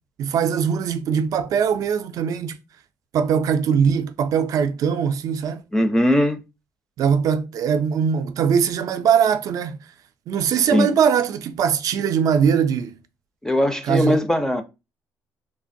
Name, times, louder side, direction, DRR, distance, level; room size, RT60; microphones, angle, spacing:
voice 1, 0.2-2.6 3.1-5.6 7.0-9.8 10.3-13.0 13.9-14.2, right 7 dB, 60° right, 0.4 m, -21 dB
voice 2, 5.7-6.4 10.6-10.9 13.4-14.6, left 1 dB, 10° left, 0.4 m, -20 dB
3.2 x 2.2 x 2.6 m
cardioid pair, 105°, 7 cm